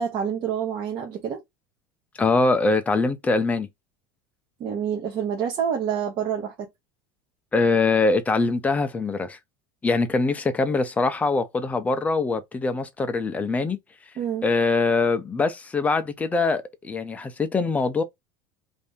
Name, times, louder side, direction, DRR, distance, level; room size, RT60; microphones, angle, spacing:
voice 1, 0.0-1.4 4.6-6.7 14.2-14.4, right 8 dB, 45° right, 0.9 m, -27 dB
voice 2, 2.2-3.7 7.5-9.4 9.8-13.8 14.4-18.0, left 3 dB, 15° left, 0.5 m, -23 dB
2.7 x 2.6 x 3.4 m
supercardioid pair, 140°, 11 cm